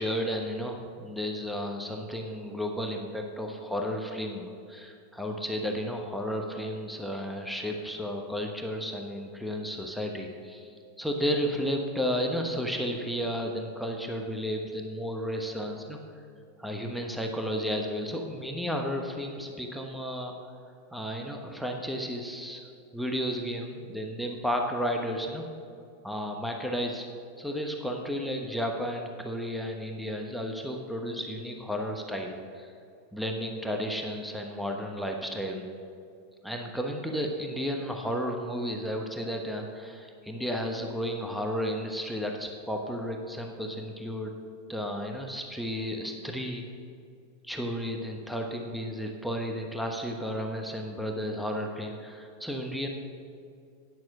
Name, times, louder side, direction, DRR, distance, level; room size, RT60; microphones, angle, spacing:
voice 1, 0.0-16.0 16.6-20.3 20.9-22.7 22.9-25.4 26.0-27.1 27.4-32.7 33.1-35.7 36.4-44.3 44.7-46.7 47.4-52.9, equal, ahead, 1 dB, 1.0 m, -33 dB
9.6 x 6.0 x 6.5 m, 2.4 s
hypercardioid pair, 105°, 0 cm